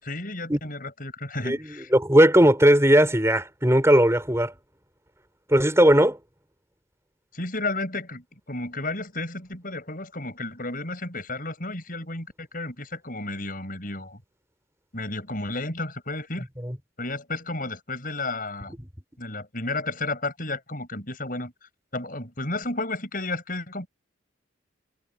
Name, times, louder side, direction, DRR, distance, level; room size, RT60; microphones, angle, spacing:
voice 1, 0.0-1.9 7.3-14.2 14.9-16.5 17.0-18.8 19.2-21.5 21.9-23.9, left 2 dB, 50° left, 6.9 m, -32 dB
voice 2, 1.9-4.5 5.5-6.2 16.6-16.8 18.8-18.9, equal, 15° right, 7.1 m, -18 dB
head